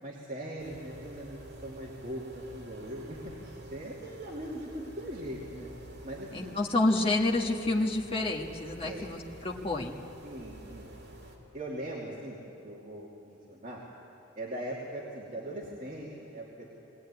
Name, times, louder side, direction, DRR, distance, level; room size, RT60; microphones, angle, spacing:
voice 1, 0.0-5.7 6.0-6.6 8.8-9.1 10.2-11.1 11.5-12.4 12.6-13.8 14.4-16.7, right 1 dB, 40° right, -6 dB, 2.6 m, -40 dB
sound 1, 0.6-11.4, right 1 dB, 55° right, 3.3 m, -48 dB
voice 2, 6.3-10.0, left 2 dB, 30° left, -1 dB, 1.6 m, -29 dB
21.0 x 17.5 x 9.7 m, 2.9 s
head